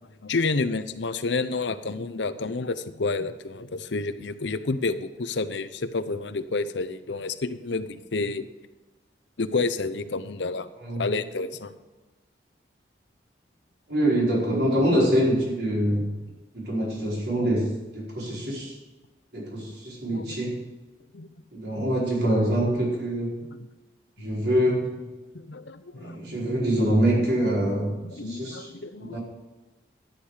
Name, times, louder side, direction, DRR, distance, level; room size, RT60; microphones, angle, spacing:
voice 1, 0.2-8.5 9.4-10.7 11.0-11.7 20.1-20.4 21.1-21.3 21.8-21.9 23.5-23.6 24.2-24.4 25.3-26.4 27.7-29.2, left 3 dB, 80° left, 12 dB, 0.8 m, -30 dB
voice 2, 13.9-16.1 16.5-17.7 17.9-18.8 19.3-20.6 21.5-23.3 24.2-25.1 25.9-28.7 29.1-29.2, right 1 dB, 65° right, -4 dB, 4.7 m, -25 dB
13.0 x 10.0 x 5.0 m, 1.2 s
head